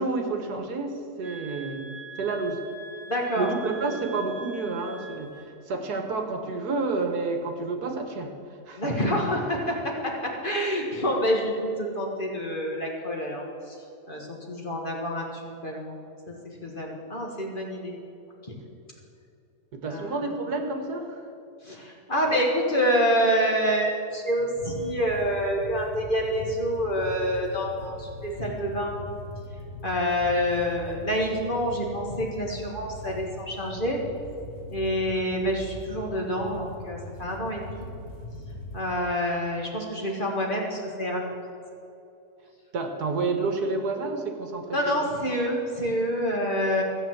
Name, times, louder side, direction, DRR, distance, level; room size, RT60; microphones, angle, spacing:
voice 1, 0.0-2.6 3.3-5.3 5.7-8.3 8.7-8.9 19.7-21.2 42.7-44.8, right 3 dB, 70° right, 5 dB, 1.7 m, -29 dB
sound 1, 1.2-5.5, right 4 dB, 25° right, 1.7 m, -43 dB
voice 2, 3.1-3.5 8.8-9.8 10.4-13.8 14.1-16.0 16.3-16.4 16.6-17.9 18.5-18.6 19.9-20.2 21.6-29.0 29.8-34.0 34.7-37.9 38.7-41.5 44.7-46.8, equal, 30° left, -1 dB, 1.9 m, -27 dB
sound 2, 24.6-39.0, left 1 dB, 65° left, 1.8 m, -41 dB
14.5 x 7.1 x 7.7 m, 2.7 s
omnidirectional pair, 1.8 m